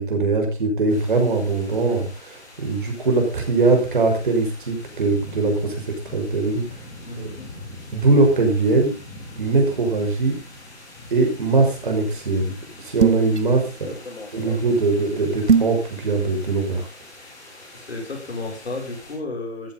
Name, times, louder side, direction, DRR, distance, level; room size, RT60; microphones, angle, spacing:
voice 1, 0.0-6.7 7.2-7.3 7.9-9.0 9.4-10.4 11.1-12.5 12.8-13.9 14.3-16.9, right 3 dB, 45° right, 3 dB, 6.0 m, -21 dB
sound 1, 0.9-19.1, left 2 dB, 15° left, 5.5 m, -43 dB
voice 2, 7.0-7.5 13.6-15.0 17.7-19.7, left 2 dB, 65° left, 2 dB, 6.9 m, -34 dB
sound 2, 13.0-13.4 15.5-15.8, right 6 dB, 75° right, 1.0 m, -18 dB
15.0 x 14.0 x 4.0 m, 0.31 s
hypercardioid pair, 170°, 34 cm